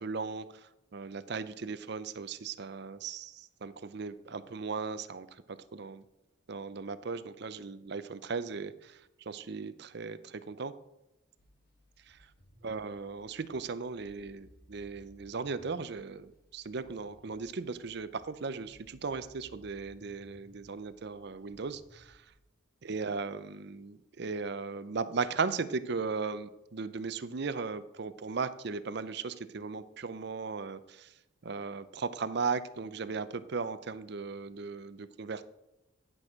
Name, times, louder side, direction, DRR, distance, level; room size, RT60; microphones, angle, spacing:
voice 1, 0.0-6.0 6.5-10.7 12.1-12.2 12.6-22.3 22.8-31.1 31.4-35.4, right 4 dB, 55° right, 13 dB, 0.5 m, -37 dB
sound 1, 11.4-22.3, left 1 dB, 50° left, 2.2 m, -61 dB
11.0 x 6.2 x 4.9 m, 0.90 s
head